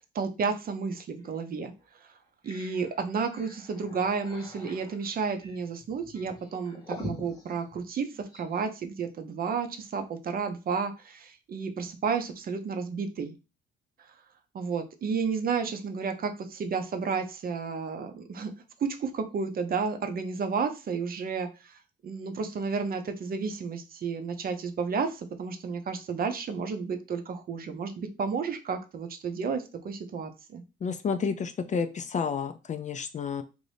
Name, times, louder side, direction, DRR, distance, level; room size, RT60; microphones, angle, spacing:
voice 1, 0.1-1.7 2.0-2.1 2.4-13.3 14.5-18.5 18.8-21.8 22.0-30.6, right 5 dB, 50° right, 7 dB, 0.6 m, -32 dB
sound 1, 1.2-1.3 1.8-1.9 2.2-8.6, left 1 dB, 20° left, 0.9 m, -45 dB
voice 2, 30.8-33.4, left 6 dB, 40° left, 10 dB, 0.4 m, -30 dB
2.6 x 2.6 x 3.3 m, 0.30 s
cardioid pair, 90°, 20 cm